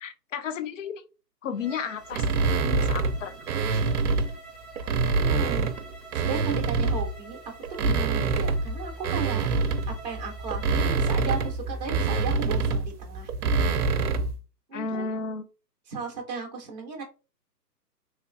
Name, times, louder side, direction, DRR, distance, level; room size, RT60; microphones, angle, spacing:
voice 1, 0.0-1.0 1.4-2.3 2.6-3.3 3.7-3.8 14.7-15.4, left 6 dB, 50° left, 10 dB, 0.5 m, -33 dB
Bowed string instrument, 1.5-11.6, right 3 dB, 90° left, 1.6 m, -47 dB
sound 1, 2.1-4.3 4.8-7.2 7.6-14.4, right 4 dB, 65° right, 0.6 m, -26 dB
voice 2, 5.1-5.7 6.1-7.4 7.7-9.5 10.0-13.3 14.7-15.2 15.9-17.0, right 4 dB, 25° right, 1 dB, 0.6 m, -35 dB
3.1 x 2.9 x 2.4 m, 0.32 s
hypercardioid pair, 145°, 49 cm